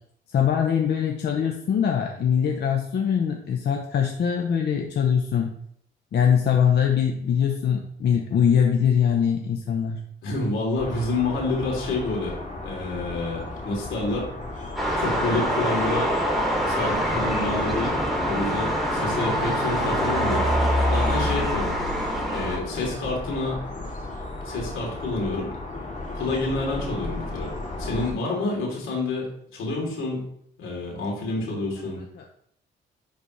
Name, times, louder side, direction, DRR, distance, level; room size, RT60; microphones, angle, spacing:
voice 1, 0.3-5.5 6.1-10.0 32.2-32.3, left 8 dB, 55° left, 2 dB, 0.9 m, -22 dB
voice 2, 10.2-12.4 12.6-14.3 14.9-16.1 16.7-17.9 18.2-20.5 20.9-21.7 22.3-23.6 24.4-25.5 26.1-27.5 27.8-30.2 30.6-32.0, left 2 dB, 80° left, -2 dB, 3.2 m, -28 dB
sound 1, 10.8-28.1, left 2 dB, 40° left, 2.6 m, -35 dB
sound 2, 14.8-22.6, equal, ahead, 2.8 m, -24 dB
10.5 x 4.2 x 3.2 m, 0.68 s
cardioid pair, 90°, 20 cm